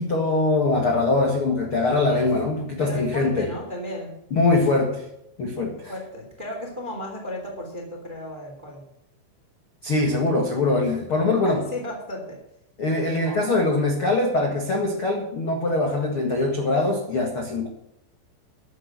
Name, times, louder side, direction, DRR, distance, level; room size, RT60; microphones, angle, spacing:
voice 1, 0.0-3.5 4.3-5.0 5.4-5.9 9.8-11.6 12.8-17.7, left 2 dB, 70° left, 1 dB, 1.3 m, -22 dB
voice 2, 2.1-2.4 2.8-4.2 5.9-8.8 11.4-12.4, left 1 dB, 15° right, 0 dB, 1.6 m, -34 dB
13.0 x 7.2 x 7.6 m, 0.82 s
omnidirectional pair, 5.5 m